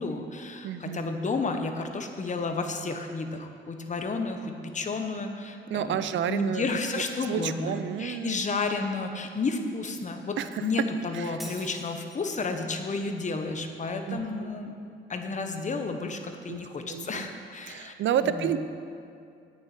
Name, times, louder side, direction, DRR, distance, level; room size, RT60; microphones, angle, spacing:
voice 1, 0.0-14.7 15.1-17.9 18.2-18.5, left 3 dB, 35° left, 5 dB, 1.2 m, -32 dB
voice 2, 0.6-1.0 5.7-6.6 7.3-8.4 10.4-10.7 11.1-11.4 14.1-14.5 16.5-16.6 16.9-17.3 17.6-18.6, right 9 dB, 70° right, 12 dB, 0.6 m, -30 dB
Shatter, 11.4-12.4, equal, ahead, 2.3 m, -44 dB
9.0 x 7.1 x 8.7 m, 2.4 s
cardioid pair, 90°, 20 cm